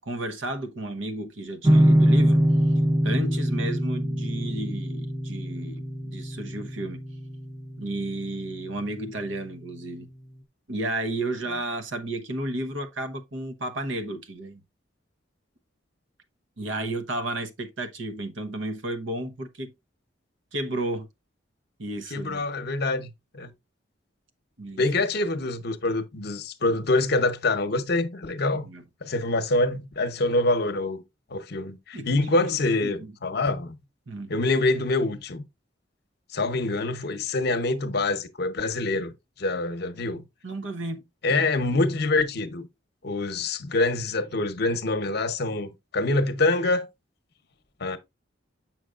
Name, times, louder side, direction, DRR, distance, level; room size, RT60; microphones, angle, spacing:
voice 1, 0.0-2.7 3.0-7.0 7.8-10.1 10.7-14.6 16.6-19.7 20.5-21.1 21.8-22.4 24.6-24.8 28.5-28.8 31.9-32.6 32.8-33.1 34.1-34.3 40.4-41.0 41.3-41.4, right 1 dB, 85° right, 0.9 m, -33 dB
sound 1, 1.6-8.8, equal, 20° right, 0.7 m, -24 dB
voice 2, 22.1-23.5 24.8-28.7 29.0-31.0 31.3-33.8 34.3-35.4 36.3-39.1 39.4-40.2 41.2-42.7 43.0-46.9 47.8-48.0, left 2 dB, 55° left, 0.8 m, -25 dB
7.7 x 5.9 x 2.4 m
head